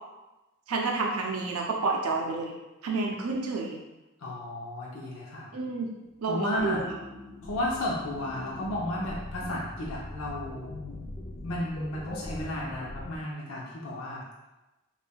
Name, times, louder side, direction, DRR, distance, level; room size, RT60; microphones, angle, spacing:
voice 1, 0.7-2.5 2.8-3.8 5.5-5.9 6.2-6.9, right 3 dB, 80° right, 0 dB, 0.4 m, -29 dB
voice 2, 4.2-5.5 6.2-6.8 7.4-10.7 11.4-14.2, left 1 dB, 70° left, -4 dB, 0.7 m, -33 dB
sound 1, 6.1-13.2, left 2 dB, 30° left, 0.4 m, -42 dB
5.3 x 2.4 x 2.2 m, 1.0 s
head